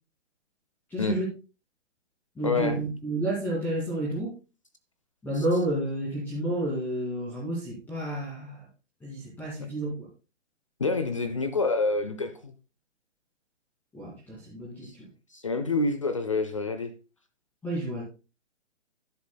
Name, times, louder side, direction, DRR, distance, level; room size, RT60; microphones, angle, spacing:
voice 1, 0.9-1.3 2.4-4.3 5.2-8.6 9.0-9.9 13.9-14.9 17.6-18.0, right 1 dB, 5° left, 2.4 m, -30 dB
voice 2, 2.4-2.8 5.3-5.4 10.8-12.5 14.8-14.9 15.3-16.9, left 3 dB, 30° left, 0.5 m, -27 dB
11.5 x 10.5 x 2.3 m
hypercardioid pair, 165°, 36 cm